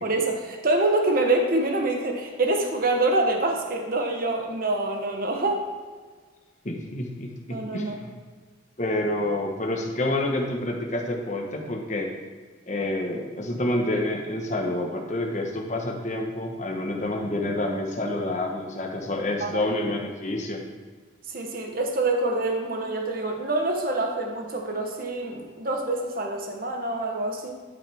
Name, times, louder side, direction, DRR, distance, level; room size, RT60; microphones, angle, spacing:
voice 1, 0.0-5.6 7.5-8.0 19.4-19.7 21.3-27.5, right 2 dB, 45° right, 2 dB, 1.0 m, -26 dB
voice 2, 6.6-8.1 8.8-12.1 12.7-20.6, left 1 dB, 35° left, 1 dB, 1.2 m, -28 dB
12.0 x 5.8 x 3.5 m, 1.5 s
head